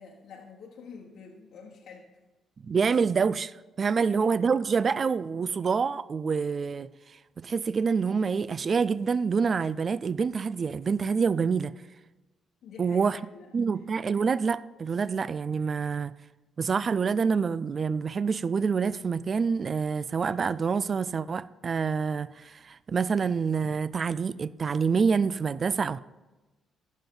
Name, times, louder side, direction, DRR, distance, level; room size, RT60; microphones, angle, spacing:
voice 1, 0.0-2.1 4.0-4.2 12.6-13.5, left 5 dB, 70° left, 1.2 m, -47 dB
voice 2, 2.6-6.9 7.4-11.7 12.8-13.2 13.5-16.1 16.6-26.0, right 5 dB, 45° right, 0.3 m, -27 dB
14.5 x 5.3 x 3.8 m
supercardioid pair, 55°, 0 cm